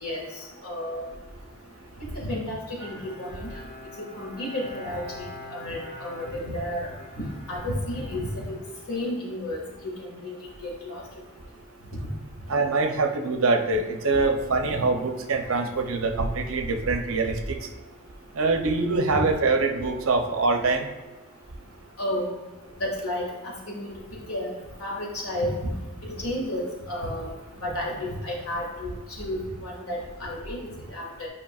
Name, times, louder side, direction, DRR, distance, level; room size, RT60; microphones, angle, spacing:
voice 1, 0.0-1.0 2.1-3.5 4.2-5.0 5.5-6.8 7.2-8.6 8.9-9.9 10.2-10.3 10.6-11.0 19.1-19.2 22.0-22.3 22.8-23.9 24.3-24.5 24.8-25.5 26.0-27.3 27.6-31.3, left 1 dB, 75° left, -2 dB, 1.9 m, -32 dB
Bowed string instrument, 2.8-9.4, left 1 dB, 45° left, 1.6 m, -45 dB
voice 2, 12.5-17.6 18.4-20.9, right 3 dB, 65° right, 6 dB, 0.7 m, -24 dB
8.8 x 4.9 x 2.4 m, 1.2 s
head